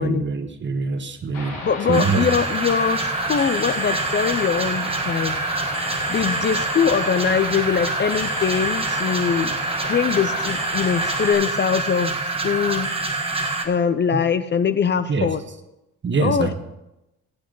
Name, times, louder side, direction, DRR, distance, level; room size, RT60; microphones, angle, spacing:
voice 1, 0.0-1.6 1.9-2.3 15.1-15.3 16.0-16.5, right 4 dB, 40° right, 7 dB, 1.3 m, -24 dB
sound 1, 1.3-11.3, left 2 dB, 85° left, 4.8 m, -33 dB
voice 2, 1.6-5.4 6.1-9.5 9.9-12.1 12.4-12.9 13.6-15.4 16.2-16.5, left 7 dB, 35° left, 12 dB, 0.6 m, -22 dB
sound 2, 1.9-13.6, right 3 dB, 20° right, 1.5 m, -26 dB
15.5 x 8.5 x 3.9 m, 0.93 s
cardioid pair, 90°, 30 cm